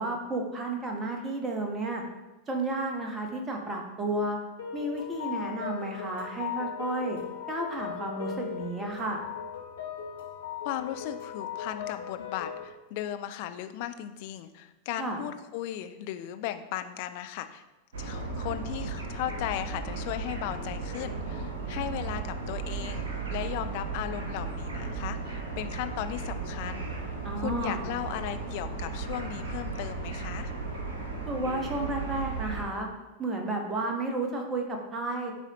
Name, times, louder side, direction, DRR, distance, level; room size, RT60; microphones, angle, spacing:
voice 1, 0.0-2.0 2.5-4.4 4.7-7.2 7.5-9.2 15.0-15.2 27.2-27.8 31.3-32.9 33.2-35.3, right 2 dB, 20° right, 2 dB, 1.2 m, -32 dB
sound 1, 4.6-12.7, left 8 dB, 65° left, 1.0 m, -38 dB
voice 2, 10.6-17.6 18.0-26.9 27.3-30.5, left 12 dB, 45° left, 9 dB, 0.4 m, -36 dB
sound 2, 17.9-32.7, right 4 dB, 65° right, 1.4 m, -35 dB
10.5 x 4.2 x 3.0 m, 1.1 s
figure-of-eight pair, 90°, 0 cm